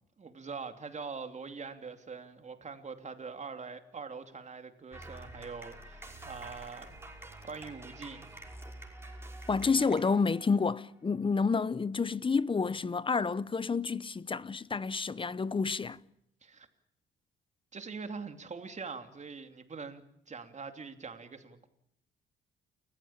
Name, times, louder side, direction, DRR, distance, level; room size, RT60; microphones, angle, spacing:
voice 1, 0.2-6.9 7.4-8.4 16.4-16.7 17.7-21.7, right 5 dB, 35° right, 2.9 m, -43 dB
sound 1, 4.9-10.8, right 1 dB, 10° right, 5.5 m, -47 dB
voice 2, 9.5-16.0, left 4 dB, 25° left, 0.8 m, -29 dB
29.5 x 15.0 x 8.8 m
cardioid pair, 90°, 20 cm